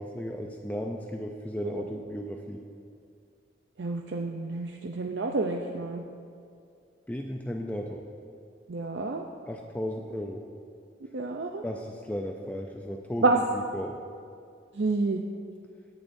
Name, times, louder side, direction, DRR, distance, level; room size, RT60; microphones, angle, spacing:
voice 1, 0.0-2.6 7.1-8.0 9.5-10.4 11.6-13.2 13.7-14.0, equal, 10° left, 2 dB, 0.5 m, -35 dB
voice 2, 3.8-6.0 8.7-9.2 11.1-11.6 13.2-13.4 14.7-15.2, right 3 dB, 75° right, 2 dB, 0.6 m, -28 dB
18.0 x 10.5 x 2.7 m, 2.4 s
head